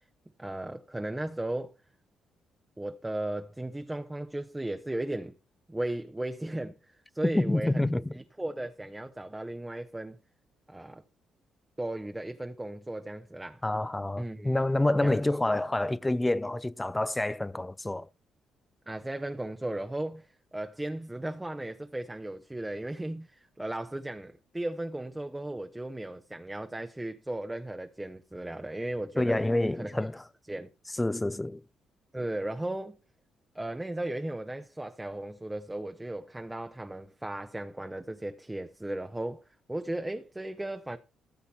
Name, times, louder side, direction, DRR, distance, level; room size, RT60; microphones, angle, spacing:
voice 1, 0.4-1.7 2.8-5.3 5.7-6.7 7.1-7.9 8.1-10.2 10.7-11.0 11.8-13.6 14.2-14.6 15.0-15.2 18.9-29.4 29.8-30.1 30.5-30.7 32.1-33.0 33.5-41.0, right 1 dB, 10° right, 0.8 m, -36 dB
voice 2, 7.2-8.1 13.6-18.1 29.2-30.2 30.9-31.6, left 1 dB, 10° left, 0.4 m, -28 dB
14.5 x 7.0 x 4.2 m
cardioid pair, 90°, 0 cm